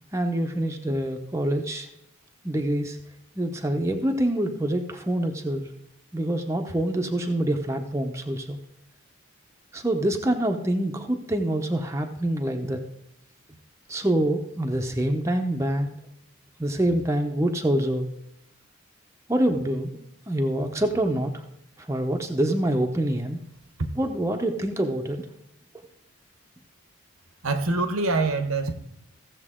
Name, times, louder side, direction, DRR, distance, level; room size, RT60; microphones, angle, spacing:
voice 1, 0.1-1.9 2.4-3.0 3.3-5.6 6.1-8.6 9.7-12.8 13.9-15.9 16.6-18.1 19.3-21.4 21.8-23.4 23.9-25.2, right 1 dB, 15° right, 3 dB, 0.8 m, -26 dB
voice 2, 27.4-28.7, right 3 dB, 80° right, 9 dB, 1.2 m, -24 dB
15.5 x 7.3 x 3.7 m, 0.79 s
head